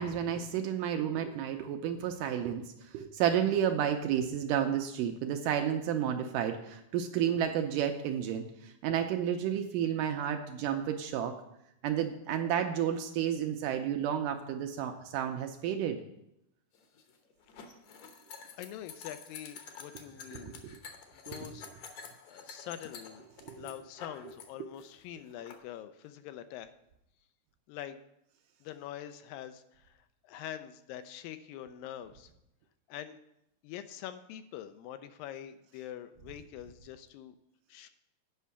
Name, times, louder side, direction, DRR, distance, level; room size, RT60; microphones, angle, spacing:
voice 1, 0.0-2.7 2.9-11.4 11.8-16.0 20.3-20.7 23.4-23.7 24.6-24.7, right 9 dB, 80° right, 5 dB, 2.0 m, -31 dB
sound 1, 16.7-24.5 24.7-25.5, left 6 dB, 65° left, 1.9 m, -49 dB
voice 2, 18.6-20.6 21.1-21.7 22.3-23.2 23.6-26.7 27.7-28.0 28.6-30.0 30.2-32.3 32.9-33.2 33.6-37.4 37.7-37.9, left 11 dB, 80° left, 10 dB, 2.2 m, -44 dB
8.3 x 5.5 x 6.9 m, 0.81 s
omnidirectional pair, 4.2 m